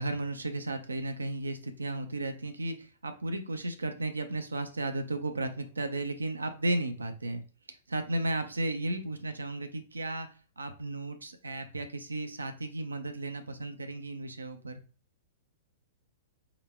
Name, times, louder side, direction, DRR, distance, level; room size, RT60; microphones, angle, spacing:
voice 1, 0.0-7.4 7.9-10.3 10.6-14.8, right 2 dB, 90° right, 7 dB, 0.5 m, -34 dB
3.8 x 2.1 x 3.4 m, 0.38 s
hypercardioid pair, 110°, 0 cm